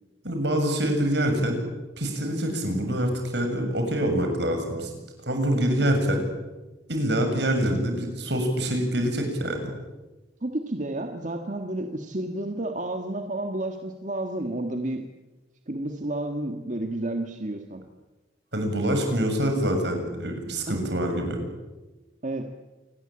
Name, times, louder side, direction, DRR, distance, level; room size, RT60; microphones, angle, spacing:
voice 1, 0.2-1.6 2.0-4.9 5.2-6.2 6.9-9.7 18.5-21.4, right 1 dB, 75° right, 4 dB, 7.4 m, -25 dB
voice 2, 10.4-15.0 15.7-17.8 20.7-20.8 22.2-22.5, right 1 dB, 45° right, 5 dB, 1.8 m, -31 dB
27.5 x 20.5 x 9.0 m, 1.1 s
head